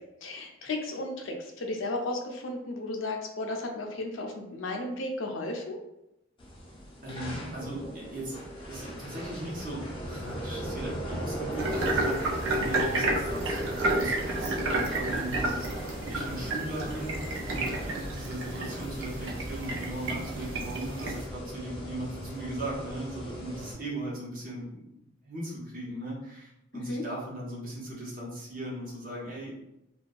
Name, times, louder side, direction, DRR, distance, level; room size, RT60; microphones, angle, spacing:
voice 1, 0.2-5.8 26.7-27.0, left 2 dB, 80° left, 2 dB, 0.5 m, -34 dB
sound 1, 6.4-23.7, equal, 25° left, 0.5 m, -38 dB
voice 2, 7.0-8.4 8.6-15.7 16.1-17.2 17.5-24.9 25.2-29.5, right 1 dB, 45° right, -5 dB, 0.8 m, -38 dB
sound 2, 11.6-21.3, right 2 dB, 85° right, 0.5 m, -31 dB
2.6 x 2.2 x 2.3 m, 0.87 s
head